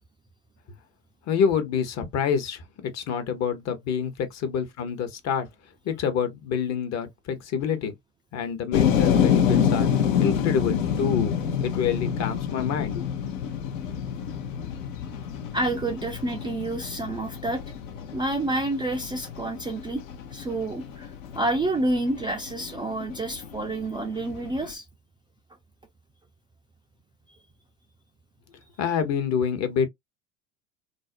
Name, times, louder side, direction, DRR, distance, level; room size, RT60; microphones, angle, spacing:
voice 1, 1.3-5.5 5.8-7.9 8.3-9.9 10.2-13.1 28.8-29.9, left 7 dB, 45° left, 0.8 m, -27 dB
sound 1, 8.7-24.7, left 8 dB, 80° left, 0.7 m, -27 dB
voice 2, 15.5-17.6 18.1-20.0 20.3-21.1 21.4-24.8, right 2 dB, 15° right, 0.3 m, -28 dB
2.5 x 2.0 x 2.4 m
hypercardioid pair, 75°, 38 cm